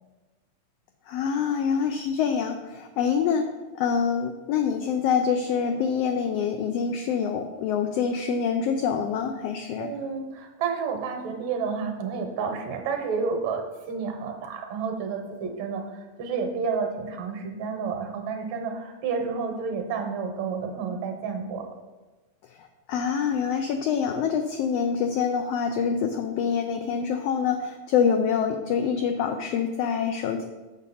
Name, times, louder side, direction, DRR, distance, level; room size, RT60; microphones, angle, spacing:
voice 1, 1.1-9.9 22.4-30.4, left 7 dB, 90° left, 6 dB, 1.4 m, -26 dB
voice 2, 9.8-21.7, right 5 dB, 75° right, 4 dB, 2.1 m, -30 dB
7.2 x 6.4 x 4.1 m, 1.2 s
omnidirectional pair, 3.3 m